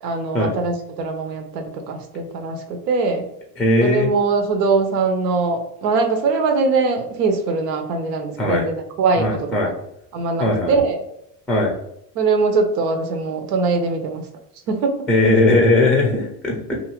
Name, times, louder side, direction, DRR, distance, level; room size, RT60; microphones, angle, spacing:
voice 1, 0.0-3.2 3.8-9.7 10.1-11.0 12.1-14.3 14.7-15.0, right 4 dB, 75° right, 5 dB, 0.8 m, -22 dB
voice 2, 3.6-4.1 8.4-8.6 9.2-9.7 10.4-10.7 11.5-11.7 15.1-16.8, left 2 dB, ahead, 1 dB, 0.5 m, -18 dB
2.7 x 2.5 x 3.0 m, 0.77 s
hypercardioid pair, 95°, 49 cm